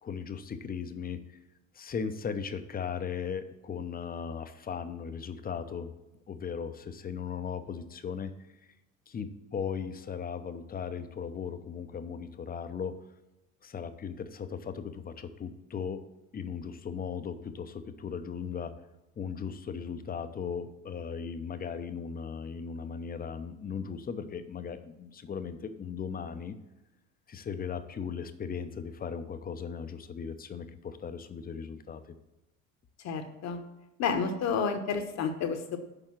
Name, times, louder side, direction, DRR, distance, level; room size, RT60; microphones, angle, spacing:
voice 1, 0.0-1.2 1.7-5.9 6.3-8.3 9.1-13.0 13.6-16.0 16.3-18.8 19.2-26.6 27.3-32.0, left 6 dB, 25° left, 10 dB, 0.7 m, -37 dB
voice 2, 33.0-33.6 34.0-35.8, left 6 dB, 45° left, 7 dB, 1.1 m, -30 dB
6.8 x 5.3 x 5.9 m, 0.98 s
hypercardioid pair, 65°, 39 cm